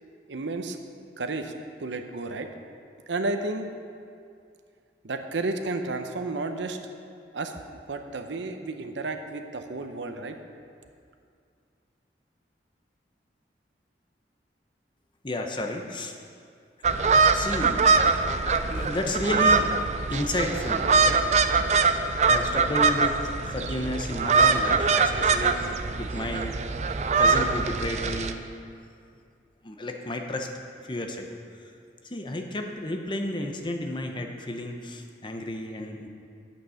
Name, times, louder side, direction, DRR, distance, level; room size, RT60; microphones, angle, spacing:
voice 1, 0.3-0.8 1.2-1.5 1.8-2.5 3.1-3.7 5.0-6.8 7.3-10.4, right 2 dB, 90° right, 7 dB, 0.7 m, -32 dB
voice 2, 15.2-16.2 17.3-17.9 18.5-19.8 20.1-21.2 21.9-26.6 27.2-28.5 29.6-30.5 30.8-31.7 32.0-36.1, left 1 dB, 25° left, 3 dB, 0.7 m, -32 dB
sound 1, 16.8-28.3, right 4 dB, 40° right, 0.4 m, -23 dB
9.6 x 8.3 x 5.7 m, 2.4 s
head